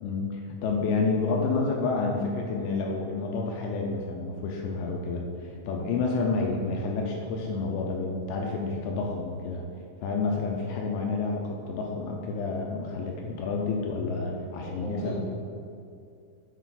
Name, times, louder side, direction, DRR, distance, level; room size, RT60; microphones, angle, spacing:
voice 1, 0.0-9.6 10.0-15.2, left 4 dB, 85° left, 0 dB, 2.5 m, -29 dB
voice 2, 14.6-15.2, equal, 70° left, -8 dB, 2.1 m, -35 dB
8.2 x 4.0 x 4.1 m, 2.4 s
omnidirectional pair, 4.5 m